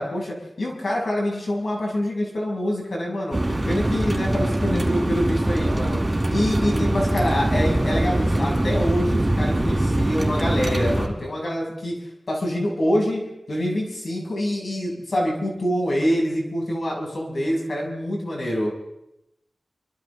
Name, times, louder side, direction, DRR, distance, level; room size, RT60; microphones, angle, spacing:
voice 1, 0.0-3.4 3.7-11.9 12.3-18.7, equal, 65° left, -2 dB, 7.0 m, -25 dB
sound 1, 3.3-11.1, right 1 dB, 25° right, 4.3 m, -22 dB
29.0 x 24.0 x 3.8 m, 0.87 s
wide cardioid pair, 60°, 0 cm